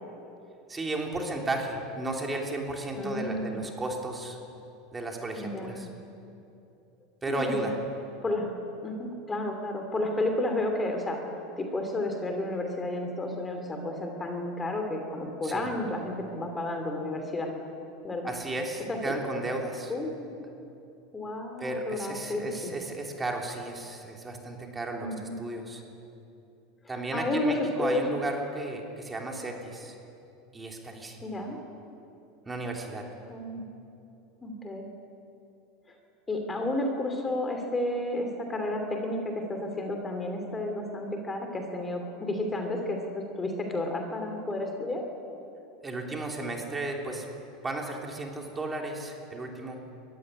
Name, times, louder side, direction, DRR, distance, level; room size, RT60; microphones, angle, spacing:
voice 1, 0.7-4.4 4.9-5.9 7.2-7.8 15.4-15.7 18.2-19.9 21.6-25.8 26.9-29.9 30.5-31.2 32.4-33.0 45.8-47.2 47.6-49.8, right 2 dB, 15° right, 1 dB, 3.3 m, -34 dB
voice 2, 3.0-3.5 5.4-5.9 7.3-7.8 8.2-8.5 8.8-11.2 11.6-17.5 18.0-18.3 18.9-19.1 19.9-20.3 21.1-22.7 25.0-25.3 26.8-28.0 31.2-31.6 33.3-33.6 34.4-34.9 36.3-45.0, left 1 dB, 15° left, 4 dB, 2.8 m, -31 dB
22.0 x 15.0 x 9.8 m, 2.7 s
supercardioid pair, 125°, 0 cm